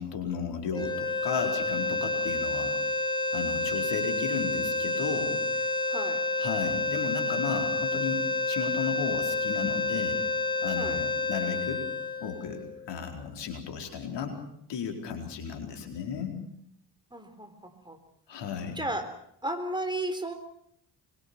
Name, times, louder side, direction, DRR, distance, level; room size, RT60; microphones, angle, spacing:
voice 1, 0.0-2.7 3.3-5.7 6.4-10.2 10.6-11.8 12.2-14.3 14.7-16.3 18.3-18.8, left 6 dB, 55° left, 4 dB, 4.7 m, -34 dB
sound 1, 0.7-13.0, left 3 dB, 10° left, 5.5 m, -29 dB
voice 2, 5.9-6.2 10.8-11.0 17.1-18.0 18.8-19.1 19.4-20.3, right 1 dB, 10° right, 6 dB, 3.8 m, -34 dB
25.5 x 22.0 x 7.1 m, 0.71 s
figure-of-eight pair, 45°, 49 cm